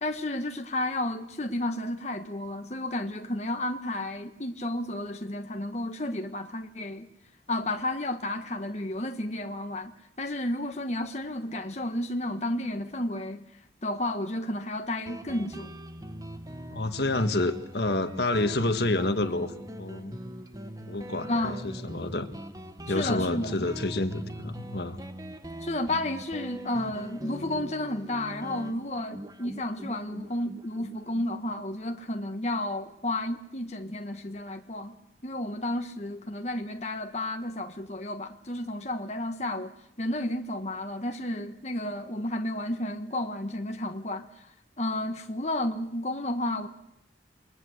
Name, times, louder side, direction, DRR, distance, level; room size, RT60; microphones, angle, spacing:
voice 1, 0.0-7.1 7.5-15.7 21.3-21.7 22.9-23.7 25.6-35.0 35.2-39.7 40.0-46.7, left 1 dB, 35° left, 1.4 m, -32 dB
Guitar, 15.1-32.3, equal, 20° right, 1.2 m, -42 dB
voice 2, 16.7-19.5 19.8-20.2 20.8-22.3 22.9-25.0, left 2 dB, 65° left, 1.7 m, -28 dB
28.5 x 22.0 x 8.0 m
head